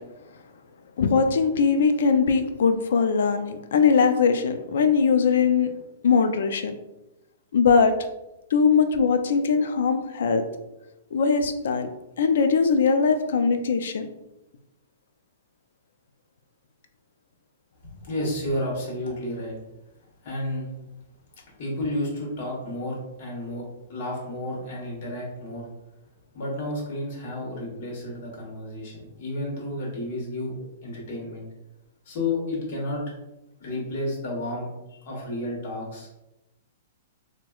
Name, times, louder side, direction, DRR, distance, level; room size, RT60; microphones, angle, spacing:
voice 1, 1.0-5.7 6.0-6.7 7.5-7.9 8.5-10.4 11.1-11.9 12.2-14.1, left 5 dB, 70° left, 8 dB, 0.4 m, -21 dB
voice 2, 17.8-19.5 20.2-20.7 21.6-23.6 23.9-25.7 26.3-31.4 32.0-33.0 33.6-34.7 35.0-36.2, left 1 dB, 45° left, -2 dB, 1.2 m, -31 dB
4.4 x 2.1 x 2.3 m, 0.95 s
hypercardioid pair, 175°, 0 cm